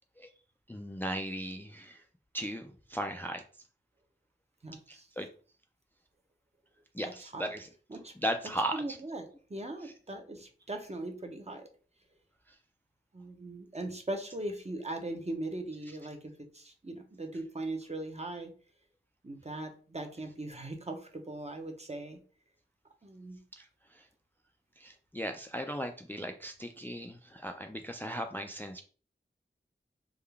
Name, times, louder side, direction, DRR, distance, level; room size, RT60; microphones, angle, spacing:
voice 1, 0.7-2.0 2.3-3.4 4.9-5.3 6.9-7.7 8.2-9.0 9.8-9.9 12.5-12.6 23.5-24.1 24.8-28.8, equal, 10° left, 5 dB, 0.3 m, -37 dB
voice 2, 4.6-5.1 7.0-7.5 7.9-8.1 8.7-11.7 13.1-18.5 19.2-22.2 23.0-23.4, right 2 dB, 30° right, 4 dB, 0.8 m, -40 dB
3.6 x 2.2 x 3.4 m, 0.41 s
wide cardioid pair, 40°, 20 cm